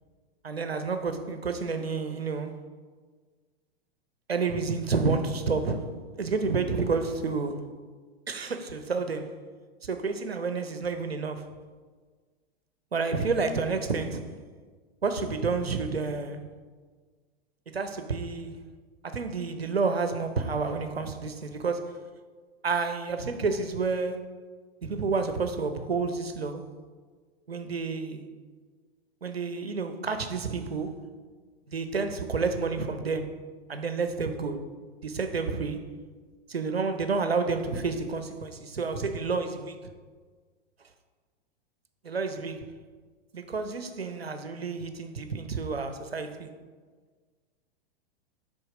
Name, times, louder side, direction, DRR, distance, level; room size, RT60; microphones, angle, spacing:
voice 1, 0.4-2.7 4.3-7.8 8.3-9.4 9.8-11.5 12.9-14.2 15.0-16.5 17.7-18.6 19.0-22.1 22.6-24.3 24.8-26.7 27.5-28.3 29.2-31.1 31.7-34.6 35.0-35.9 36.5-39.8 42.0-42.7 43.3-46.5, right 4 dB, 85° right, 0.6 m, -30 dB
6.8 x 4.0 x 4.9 m
figure-of-eight pair, 100°, 30 cm